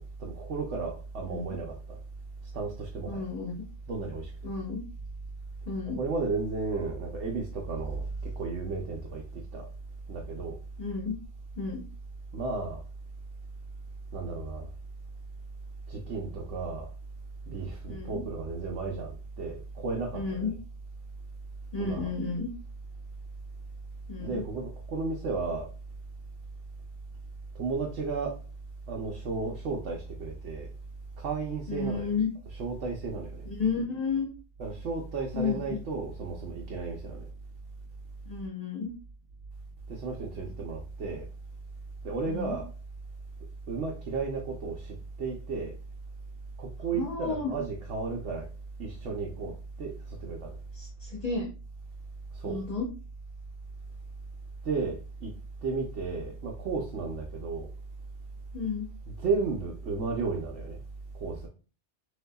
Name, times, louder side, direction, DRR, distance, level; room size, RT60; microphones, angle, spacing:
voice 1, 0.0-2.0 2.5-3.3 3.9-4.3 5.9-8.1 8.4-9.7 10.1-10.6 12.3-12.8 14.1-14.7 15.9-16.9 17.5-20.5 21.8-22.1 24.2-25.7 27.6-28.4 28.9-30.7 31.2-32.1 32.5-33.5 34.6-37.2 39.9-41.2 42.0-42.7 43.7-45.7 46.6-48.5 48.8-49.5 49.8-50.5 52.4-52.6 54.6-55.3 55.6-57.7 59.2-60.8 61.2-61.5, right 4 dB, 80° right, 0 dB, 1.1 m, -33 dB
voice 2, 1.3-1.6 3.1-3.6 4.4-4.8 5.7-6.0 10.8-11.2 11.6-11.8 17.9-18.2 20.1-20.5 21.7-22.5 24.1-24.4 31.7-32.3 33.4-34.3 35.3-35.8 38.3-38.9 42.3-42.6 46.9-47.5 50.7-51.5 52.4-52.9 58.5-58.9, left 5 dB, 35° left, -2 dB, 1.0 m, -32 dB
6.4 x 2.7 x 2.3 m, 0.34 s
omnidirectional pair, 1.2 m